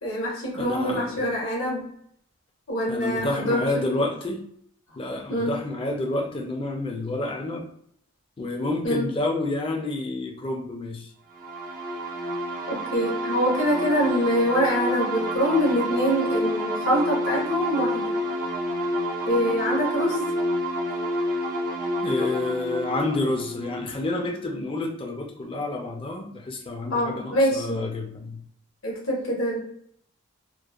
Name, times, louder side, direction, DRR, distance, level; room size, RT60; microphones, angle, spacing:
voice 1, 0.0-1.9 2.7-3.7 4.0-4.1 5.3-5.6 8.8-9.1 12.7-18.2 19.3-20.2 26.9-27.9 28.8-29.6, equal, 70° left, -3 dB, 1.0 m, -25 dB
voice 2, 0.6-1.1 2.9-4.4 5.0-7.7 8.4-11.1 22.0-28.4, left 2 dB, 25° left, 1 dB, 0.4 m, -29 dB
sound 1, 11.3-24.8, equal, 40° right, 0.5 m, -29 dB
2.9 x 2.1 x 2.3 m, 0.67 s
head